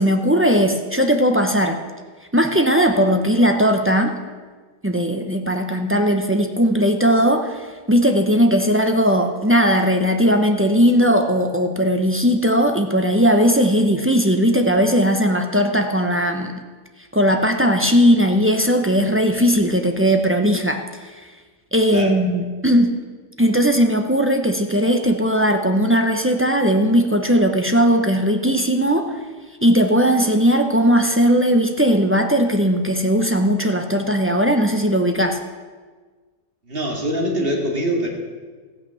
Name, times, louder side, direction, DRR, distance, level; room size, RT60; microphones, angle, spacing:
voice 1, 0.0-1.8 2.3-4.1 4.8-16.5 17.1-20.8 21.7-22.9 23.4-29.1 29.6-35.4, equal, 15° right, 4 dB, 0.5 m, -18 dB
voice 2, 36.6-38.1, equal, 35° right, 1 dB, 2.4 m, -23 dB
14.5 x 9.0 x 7.0 m, 1.4 s
omnidirectional pair, 1.8 m